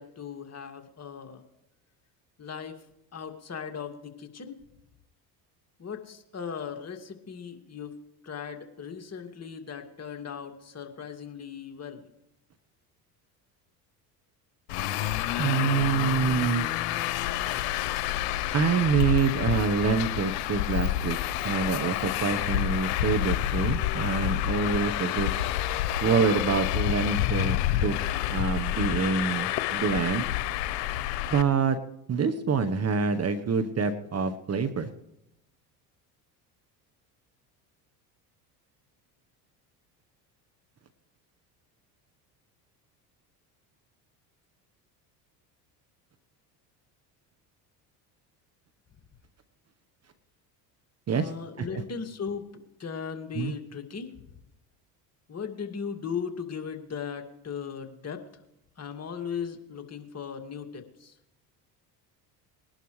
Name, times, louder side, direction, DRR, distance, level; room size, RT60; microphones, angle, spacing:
voice 1, 0.0-1.4 2.4-2.8 3.1-4.6 5.8-12.0 51.1-52.5 52.8-54.2 55.3-58.2 58.8-61.1, left 6 dB, 30° left, 5 dB, 2.3 m, -37 dB
Traffic noise roadway noise, 14.7-31.4, left 13 dB, 75° left, 1.0 m, -28 dB
voice 2, 15.4-16.7 18.5-21.2 21.4-25.3 26.0-27.9 28.3-30.3 31.3-31.8 32.1-34.9 51.1-51.3 51.6-51.7 53.3-53.5, right 5 dB, 30° right, 9 dB, 1.1 m, -26 dB
21.0 x 11.5 x 3.2 m, 0.83 s
hypercardioid pair, 75°, 48 cm